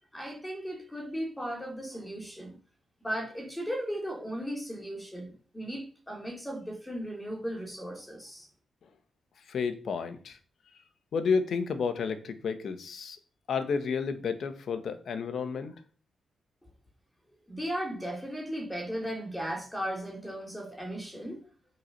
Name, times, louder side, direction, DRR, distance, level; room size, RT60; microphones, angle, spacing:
voice 1, 0.1-2.6 3.0-8.5 17.5-21.4, equal, 10° left, 3.0 m, -36 dB
voice 2, 9.5-10.4 11.1-13.2 13.5-15.7, left 5 dB, 60° left, 1.4 m, -31 dB
8.3 x 4.7 x 6.0 m
cardioid pair, 100°, 0 cm